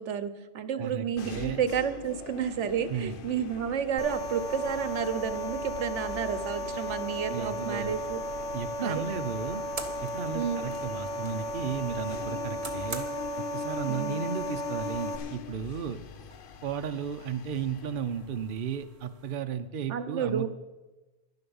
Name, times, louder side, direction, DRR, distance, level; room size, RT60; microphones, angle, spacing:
voice 1, 0.0-8.2 8.8-9.1 10.3-10.7 13.9-14.3 19.9-20.5, right 8 dB, 75° right, 12 dB, 1.1 m, -31 dB
voice 2, 0.8-1.6 2.9-3.2 7.3-8.0 8.5-9.6 10.0-13.1 13.4-16.0 16.6-20.5, right 7 dB, 50° right, 8 dB, 0.8 m, -34 dB
sound 1, 1.2-18.6, left 7 dB, 55° left, 0.7 m, -43 dB
sound 2, 4.0-15.2, equal, 85° left, 1.6 m, -35 dB
sound 3, 8.8-19.4, right 3 dB, 30° right, 1.2 m, -48 dB
11.0 x 10.5 x 7.0 m, 1.1 s
omnidirectional pair, 1.3 m